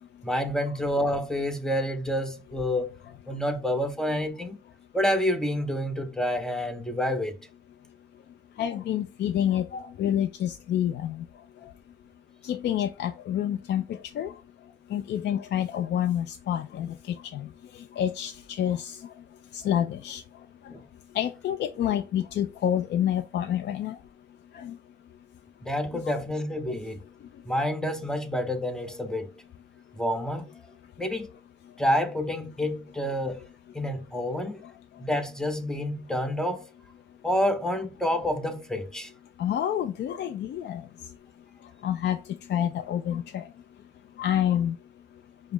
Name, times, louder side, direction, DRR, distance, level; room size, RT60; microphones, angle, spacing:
voice 1, 0.2-3.0 3.3-4.6 4.9-7.4 20.7-20.8 25.6-27.0 27.4-29.3 30.0-30.5 31.0-31.3 31.8-33.5 33.7-34.6 35.0-36.7 37.2-39.1, left 1 dB, 5° left, 0.7 m, -28 dB
voice 2, 8.6-11.2 12.4-14.3 14.9-19.1 19.5-20.2 21.1-24.0 24.5-24.8 34.6-34.7 39.4-40.9 41.8-42.2 42.5-43.5 44.2-44.8, left 10 dB, 60° left, 0.4 m, -28 dB
5.2 x 2.0 x 3.3 m
cardioid pair, 90°, 20 cm